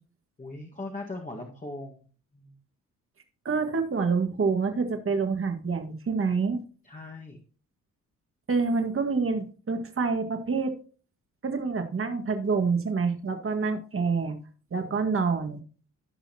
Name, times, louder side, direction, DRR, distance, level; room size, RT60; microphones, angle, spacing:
voice 1, 0.4-2.0 2.3-2.6 6.8-7.4 14.8-15.1, left 2 dB, 25° left, -1 dB, 1.8 m, -39 dB
voice 2, 3.5-6.6 8.5-10.8 11.4-14.4 14.7-15.6, right 4 dB, 40° right, 5 dB, 1.9 m, -27 dB
16.0 x 5.7 x 2.9 m, 0.40 s
cardioid pair, 70°, 33 cm